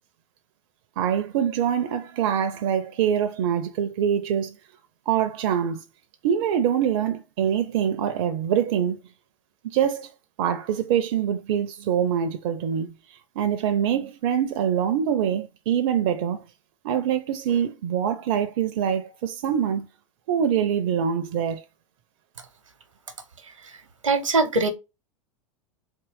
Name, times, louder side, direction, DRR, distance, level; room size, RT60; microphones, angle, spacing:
voice 1, 1.0-4.6 5.1-5.8 6.2-9.0 9.6-10.1 10.4-12.9 13.4-16.4 16.8-19.9 20.3-21.6, right 9 dB, 50° right, 0.5 m, -24 dB
voice 2, 24.0-24.7, right 3 dB, 80° right, 0.9 m, -21 dB
3.7 x 2.9 x 4.6 m
figure-of-eight pair, 85°, 16 cm